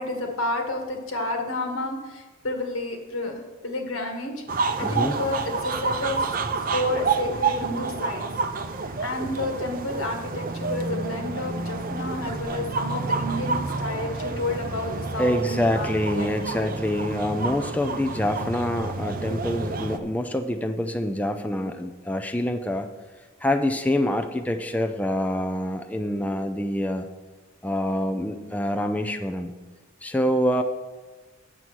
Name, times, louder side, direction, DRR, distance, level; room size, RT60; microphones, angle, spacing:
voice 1, 0.0-6.4 6.7-8.3 8.8-15.9 16.2-16.3 16.5-16.8, left 2 dB, 90° left, 3 dB, 1.7 m, -30 dB
sound 1, 4.5-20.0, right 4 dB, 45° right, 0.6 m, -29 dB
voice 2, 4.8-5.1 15.2-22.9 23.4-27.0 27.6-29.5 30.0-30.6, left 1 dB, 5° left, 6 dB, 0.5 m, -26 dB
8.3 x 7.5 x 6.2 m, 1.2 s
head